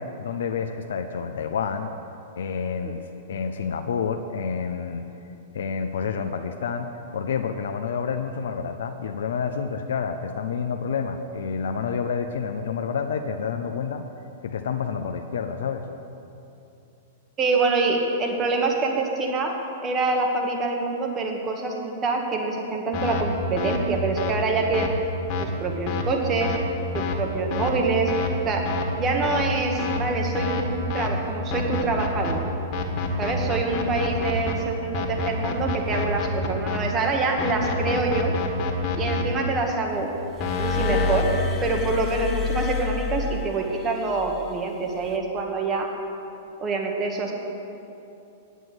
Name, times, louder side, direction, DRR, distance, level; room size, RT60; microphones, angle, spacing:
voice 1, 0.0-1.9 2.4-3.0 3.3-5.0 5.5-6.9 7.1-14.1 14.4-15.9, left 6 dB, 75° left, 6 dB, 0.6 m, -29 dB
voice 2, 17.4-21.7 22.0-24.9 25.4-26.6 26.9-28.1 28.5-28.7 29.0-32.4 33.2-38.3 39.0-40.1 40.5-41.3 41.6-45.9 46.6-47.4, right 3 dB, 30° right, 1 dB, 1.8 m, -26 dB
sound 1, 22.9-23.2 23.6-23.8 24.2-24.3 24.7-24.9 25.3-25.4 25.9-26.0 26.4-26.6 26.9-27.2 27.5-27.7 28.1-28.3 28.6-28.8 29.2-29.4 29.8-30.0 30.3-30.6 30.9-31.1 31.5-32.3 32.7-34.5 34.9-36.8 37.4-39.2 40.4-41.2, left 4 dB, 40° left, 1.7 m, -27 dB
Glass, 40.4-44.0 44.9-45.2, left 5 dB, 20° left, 1.2 m, -28 dB
9.2 x 9.0 x 8.0 m, 2.8 s
hypercardioid pair, 110°, 0 cm